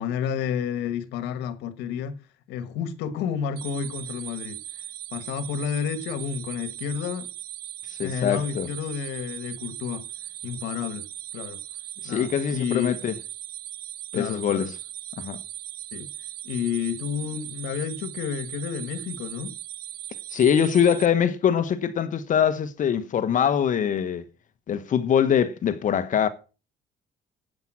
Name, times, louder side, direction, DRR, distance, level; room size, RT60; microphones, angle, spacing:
voice 1, 0.0-2.2 2.5-4.6 5.1-7.3 8.0-10.0 10.4-11.0 11.3-11.6 12.0-13.0 14.1-14.7 15.9-16.1 16.4-19.5, left 8 dB, 90° left, 1.5 m, -30 dB
sound 1, 3.6-21.1, right 12 dB, 60° right, 0.7 m, -39 dB
voice 2, 7.9-8.7 12.0-13.1 14.1-14.7 15.2-15.4 20.3-24.2 24.7-26.3, left 8 dB, 50° left, 1.2 m, -23 dB
10.5 x 8.5 x 6.1 m
cardioid pair, 110°, 17 cm